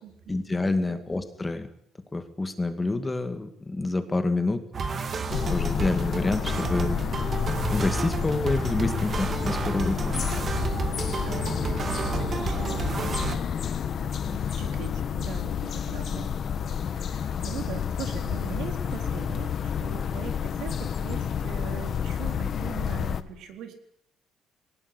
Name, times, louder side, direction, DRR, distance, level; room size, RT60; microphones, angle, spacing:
voice 1, 0.3-1.7 2.1-4.6 5.5-7.0 7.7-10.2, left 2 dB, 15° left, 8 dB, 2.1 m, -28 dB
sound 1, 4.7-13.4, right 5 dB, 35° right, 2.1 m, -31 dB
sound 2, 5.3-23.2, left 8 dB, 45° left, 1.4 m, -30 dB
voice 2, 11.2-16.3 16.9-23.7, right 8 dB, 80° right, 5 dB, 3.9 m, -41 dB
21.5 x 19.0 x 9.8 m, 0.69 s
cardioid pair, 150°, 0 cm